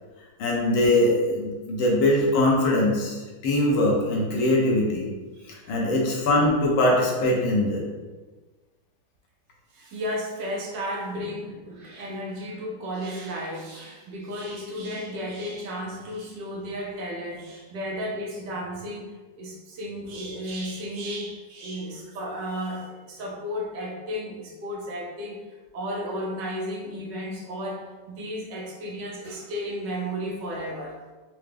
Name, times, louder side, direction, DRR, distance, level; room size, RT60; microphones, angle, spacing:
voice 1, 0.4-5.1 5.5-7.8, left 1 dB, 85° left, -2 dB, 1.6 m, -22 dB
voice 2, 9.7-25.4 25.7-31.1, equal, 70° right, -2 dB, 1.2 m, -33 dB
4.6 x 2.1 x 3.3 m, 1.3 s
omnidirectional pair, 2.2 m